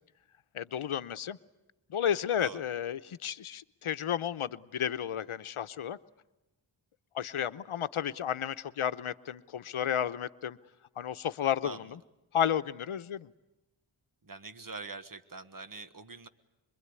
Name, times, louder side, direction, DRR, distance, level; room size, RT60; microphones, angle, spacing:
voice 1, 0.5-1.4 1.9-6.0 7.1-10.6 11.0-12.0 12.3-13.3, left 9 dB, 90° left, 13 dB, 0.9 m, -32 dB
voice 2, 14.2-16.3, right 4 dB, 40° right, 11 dB, 1.5 m, -44 dB
26.5 x 22.5 x 9.7 m, 1.0 s
wide cardioid pair, 100°, 49 cm